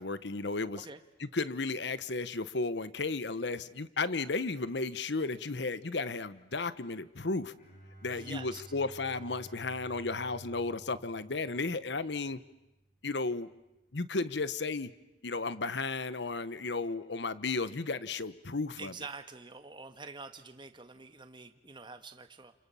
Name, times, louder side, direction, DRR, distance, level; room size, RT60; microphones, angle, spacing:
voice 1, 0.0-0.8 1.2-7.5 8.0-12.4 13.0-13.5 13.9-14.9 15.2-18.9, left 3 dB, 70° left, 15 dB, 1.1 m, -34 dB
Bowed string instrument, 7.5-13.3, right 1 dB, 45° left, 6.8 m, -53 dB
voice 2, 8.1-8.6 18.8-22.5, right 4 dB, 25° right, 8 dB, 1.5 m, -46 dB
30.0 x 28.5 x 7.1 m, 0.97 s
head